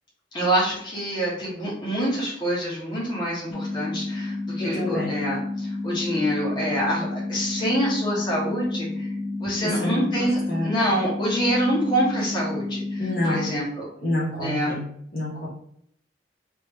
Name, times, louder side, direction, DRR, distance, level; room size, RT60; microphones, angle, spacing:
voice 1, 0.3-9.1 9.4-13.9 14.4-14.7, equal, 25° left, -7 dB, 1.4 m, -26 dB
sound 1, 3.5-13.5, left 2 dB, 70° left, 0.6 m, -31 dB
voice 2, 4.6-5.2 9.6-10.8 13.0-13.6 14.0-14.9 15.1-15.5, left 1 dB, 55° left, -6 dB, 1.2 m, -28 dB
3.5 x 3.0 x 3.2 m, 0.70 s
head